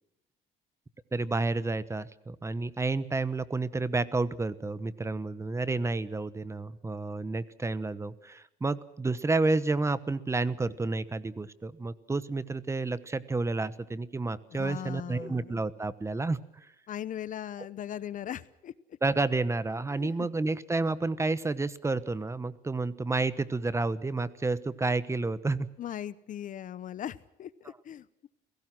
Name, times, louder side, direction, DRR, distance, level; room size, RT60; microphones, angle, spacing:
voice 1, 1.1-16.4 19.0-25.7, right 3 dB, 15° right, 16 dB, 1.1 m, -30 dB
voice 2, 14.5-15.6 16.9-18.7 19.9-20.3 25.8-28.3, left 10 dB, 50° left, 18 dB, 0.9 m, -39 dB
30.0 x 17.5 x 6.1 m, 0.87 s
cardioid pair, 110°, 17 cm